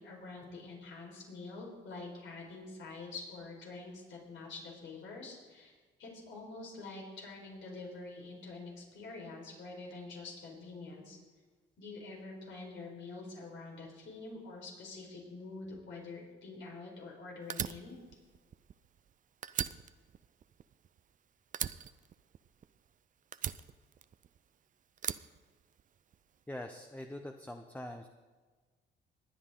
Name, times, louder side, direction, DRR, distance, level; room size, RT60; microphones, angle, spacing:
voice 1, 0.0-5.7 6.0-11.2 11.8-17.9, left 3 dB, 70° left, -1 dB, 4.6 m, -46 dB
Fire, 17.5-19.1 19.4-21.2 21.5-22.9 23.3-24.5 25.0-26.2, right 8 dB, 40° right, 0.5 m, -39 dB
voice 2, 26.5-28.1, left 1 dB, 10° left, 4 dB, 0.8 m, -43 dB
20.0 x 9.7 x 3.8 m, 1.4 s
cardioid pair, 90°, 20 cm